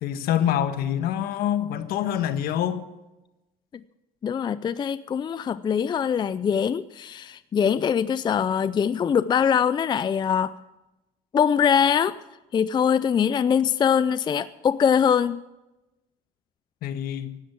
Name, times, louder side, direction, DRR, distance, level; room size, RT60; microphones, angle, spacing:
voice 1, 0.0-2.8 16.8-17.4, left 10 dB, 65° left, 1.3 m, -26 dB
voice 2, 4.2-10.5 11.3-12.1 12.5-15.4, left 7 dB, 25° left, 0.4 m, -22 dB
16.0 x 12.5 x 6.0 m
cardioid pair, 110°, 16 cm